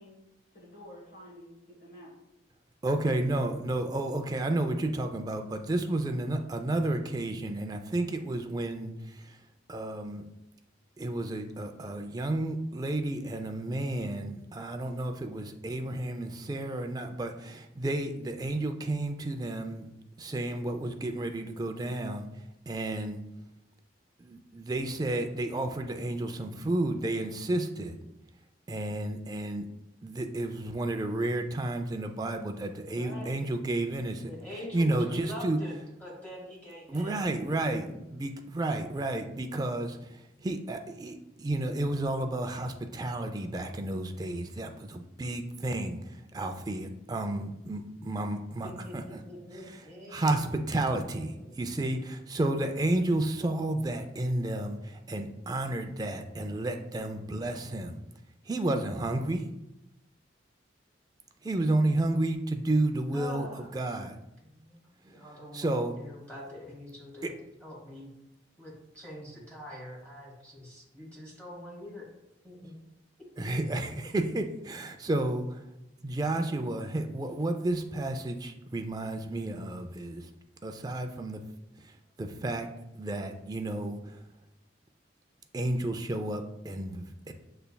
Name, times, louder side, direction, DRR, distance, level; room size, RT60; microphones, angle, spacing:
voice 1, 0.0-2.1, equal, 55° left, -3 dB, 1.3 m, -50 dB
voice 2, 2.8-9.4 9.7-10.2 11.0-19.9 20.2-23.2 24.2-28.0 28.7-29.7 30.0-34.3 34.7-35.6 36.9-49.2 49.5-58.0 58.4-59.5 61.4-64.2 65.1-66.0 67.2-67.3 73.4-75.6 76.0-80.3 80.6-81.4 81.8-82.7 82.9-84.2 85.5-87.3, right 1 dB, 20° right, 6 dB, 0.3 m, -32 dB
voice 3, 32.9-33.4 34.2-35.7 36.0-37.2 48.6-48.9 49.3-50.4 51.4-51.5 63.1-63.7 64.4-64.8 65.0-67.3 67.6-68.1 68.6-72.1 72.4-72.8, left 1 dB, 10° left, -5 dB, 1.6 m, -44 dB
6.8 x 3.3 x 2.2 m, 0.89 s
head